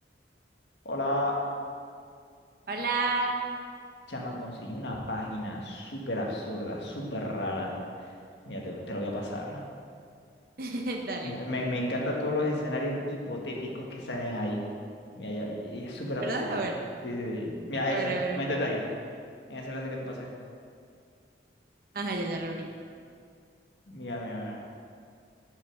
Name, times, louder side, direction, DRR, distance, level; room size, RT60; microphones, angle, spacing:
voice 1, 0.8-1.4 4.1-7.7 8.0-8.1 8.4-9.6 11.2-14.6 15.1-16.7 17.0-18.8 19.5-20.3 23.9-24.6, left 1 dB, 75° left, -1 dB, 1.5 m, -32 dB
voice 2, 2.7-3.4 10.6-11.3 16.2-16.7 17.9-18.4 21.9-22.7, right 3 dB, 50° right, 1 dB, 0.8 m, -30 dB
8.0 x 5.6 x 6.4 m, 2.3 s
head